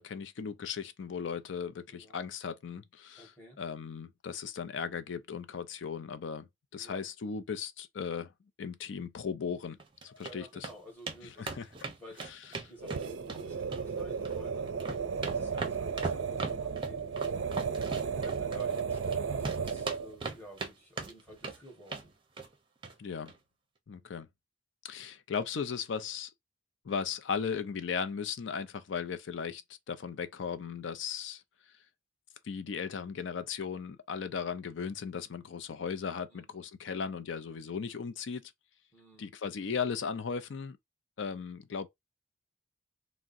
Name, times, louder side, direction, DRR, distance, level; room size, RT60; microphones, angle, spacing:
voice 1, 0.0-8.3 8.6-9.8 10.0-10.7 11.2-11.7 12.2-12.7 23.0-23.3 23.9-24.3 24.8-26.3 26.8-29.6 29.9-31.4 32.4-38.5 39.2-40.8 41.2-41.9, left 6 dB, 70° left, 0.4 m, -37 dB
voice 2, 3.2-3.6 6.7-7.1 10.2-11.5 12.0-14.7 15.1-17.1 17.7-22.1 36.3-36.6 38.9-39.3, equal, 10° left, 1.5 m, -51 dB
sound 1, 9.8-10.3 10.6-10.7 11.1-11.2 11.5-13.4 13.7-14.4 14.7-19.2 19.4-20.7 21.0-21.6 21.9-22.1 22.4-22.5 22.8-22.9 23.3-23.4, right 3 dB, 25° right, 0.6 m, -38 dB
sound 2, 12.8-20.2, right 6 dB, 75° right, 0.4 m, -34 dB
3.5 x 2.1 x 2.5 m
head